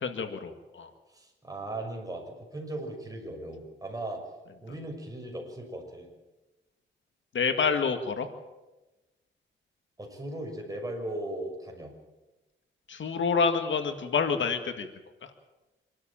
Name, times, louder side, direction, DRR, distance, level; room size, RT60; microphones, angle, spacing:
voice 1, 0.0-0.9 7.3-8.3 12.9-14.9, left 5 dB, 70° left, 7 dB, 2.0 m, -27 dB
voice 2, 1.1-4.2 4.6-6.1 10.0-11.9, right 1 dB, 15° right, 1 dB, 6.6 m, -38 dB
26.0 x 12.5 x 8.9 m, 1.1 s
cardioid pair, 95°, 20 cm